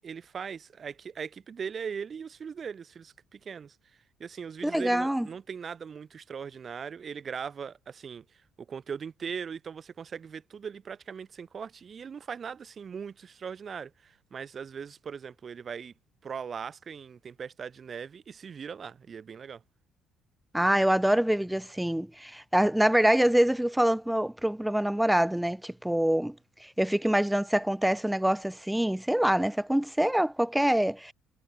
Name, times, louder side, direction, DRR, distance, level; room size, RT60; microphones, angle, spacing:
voice 1, 0.0-3.8 4.2-15.9 16.2-19.6, right 6 dB, 40° right, 1.8 m, -39 dB
voice 2, 4.6-5.3 20.5-26.4 26.6-31.1, right 1 dB, 5° right, 0.7 m, -25 dB
cardioid pair, 95°, 0 cm